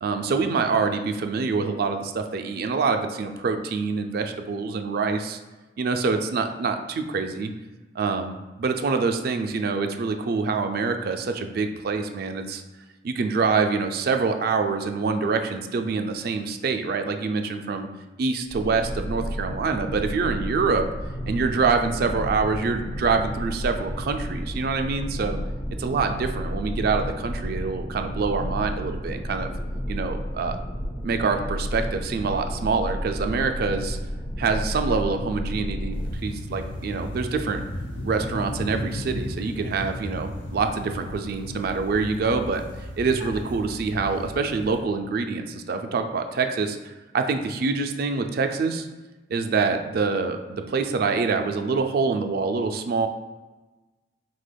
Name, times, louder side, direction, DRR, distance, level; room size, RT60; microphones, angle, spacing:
voice 1, 0.0-5.4 5.8-7.5 8.0-12.6 13.0-17.9 18.2-20.9 21.3-25.4 25.8-29.5 29.9-30.6 31.0-34.0 34.4-37.6 38.0-42.6 43.0-46.8 47.1-48.9 49.3-53.1, right 4 dB, 55° right, 6 dB, 0.3 m, -25 dB
sound 1, 18.5-36.1, equal, 10° left, 0.5 m, -32 dB
sound 2, 35.9-44.8, left 1 dB, 80° left, 0.6 m, -35 dB
5.0 x 3.7 x 2.2 m, 1.2 s
head